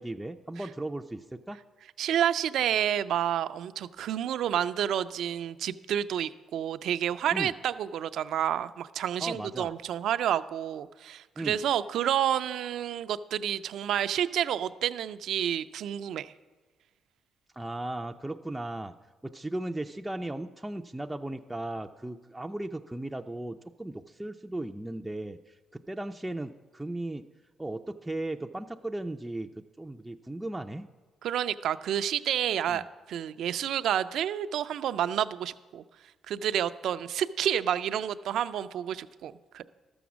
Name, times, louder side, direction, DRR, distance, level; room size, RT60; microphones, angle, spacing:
voice 1, 0.0-1.6 7.3-7.5 9.2-9.7 11.4-11.6 17.5-18.9 19.2-27.2 27.6-30.9 32.7-32.9, right 1 dB, 10° right, 4 dB, 0.4 m, -36 dB
voice 2, 2.0-16.3 31.2-35.8 36.3-39.6, right 10 dB, 75° right, 13 dB, 0.4 m, -29 dB
13.0 x 7.0 x 6.2 m, 1.3 s
cardioid pair, 90°, 0 cm